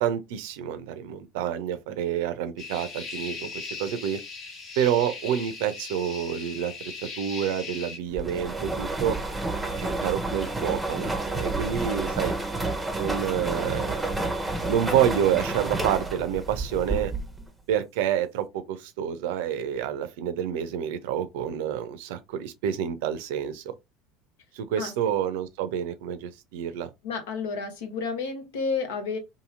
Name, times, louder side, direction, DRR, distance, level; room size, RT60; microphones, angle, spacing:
voice 1, 0.0-4.2 4.8-6.7 7.2-9.2 9.7-12.4 13.0-14.1 14.7-17.1 17.7-23.7 24.5-26.9, right 9 dB, 70° right, 0.5 m, -28 dB
sound 1, 2.6-8.0, left 4 dB, 45° left, 1.1 m, -38 dB
sound 2, 8.2-17.5, right 2 dB, 10° right, 0.7 m, -30 dB
voice 2, 27.0-29.2, left 5 dB, 75° left, 0.8 m, -30 dB
2.9 x 2.6 x 2.5 m
hypercardioid pair, 75°, 0 cm